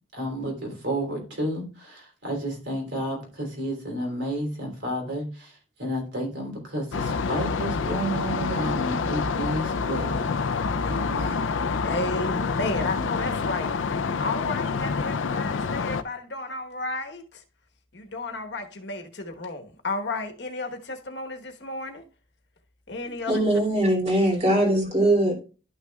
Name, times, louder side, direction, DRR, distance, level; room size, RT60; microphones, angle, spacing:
voice 1, 0.1-10.4 10.9-11.4, right 1 dB, 65° right, 3.4 m, -31 dB
sound 1, 6.9-16.0, left 4 dB, 80° left, 0.5 m, -27 dB
voice 2, 10.5-11.0 11.8-13.7 14.2-17.4 17.9-22.1 22.9-23.4, left 2 dB, 60° left, 1.2 m, -33 dB
voice 3, 23.3-25.4, right 1 dB, 35° right, 2.6 m, -21 dB
12.0 x 6.2 x 2.3 m
head